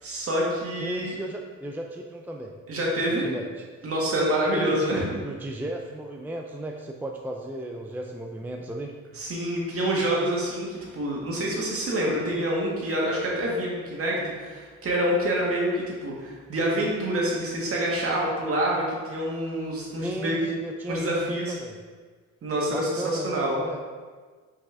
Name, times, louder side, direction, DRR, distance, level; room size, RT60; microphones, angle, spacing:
voice 1, 0.0-1.1 2.7-3.3 3.8-5.1 9.2-20.4 20.9-21.5 22.4-23.6, right 1 dB, 50° right, -3 dB, 1.8 m, -27 dB
voice 2, 0.8-2.5 3.2-3.7 4.6-8.9 20.0-21.8 22.7-23.8, right 1 dB, 5° right, 2 dB, 0.4 m, -35 dB
6.1 x 4.8 x 3.4 m, 1.5 s
cardioid pair, 90°, 30 cm